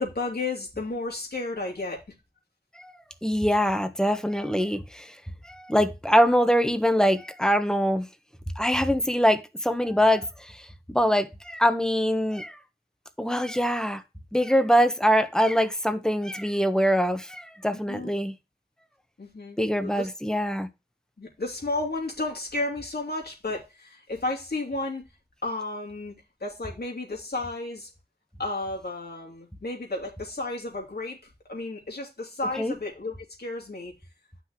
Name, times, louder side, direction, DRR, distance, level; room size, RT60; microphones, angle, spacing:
voice 1, 0.0-2.0 17.7-18.1 19.2-20.1 21.2-25.0 25.4-26.1 26.4-27.9 28.4-31.2 31.5-33.9, left 2 dB, 80° left, 3.1 m, -32 dB
voice 2, 3.2-5.1 5.5-8.1 8.6-12.6 13.2-14.0 14.3-18.3 19.6-20.7 32.6-32.7, equal, 5° left, 1.2 m, -23 dB
9.7 x 6.0 x 3.1 m
wide cardioid pair, 50°, 16 cm